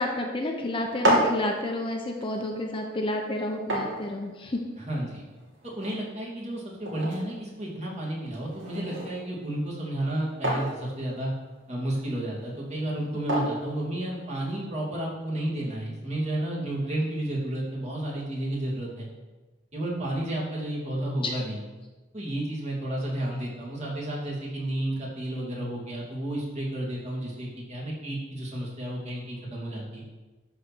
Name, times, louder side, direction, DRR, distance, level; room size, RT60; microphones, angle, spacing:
voice 1, 0.0-4.6 13.3-13.4 21.2-21.3, left 1 dB, 25° left, 2 dB, 0.9 m, -30 dB
sound 1, 0.8-14.6, right 1 dB, 65° right, 2.8 m, -33 dB
voice 2, 4.9-5.2 5.6-11.3 11.7-19.1 19.7-21.6 22.1-30.0, right 1 dB, 35° right, -4 dB, 2.8 m, -32 dB
12.5 x 4.3 x 6.3 m, 1.2 s
head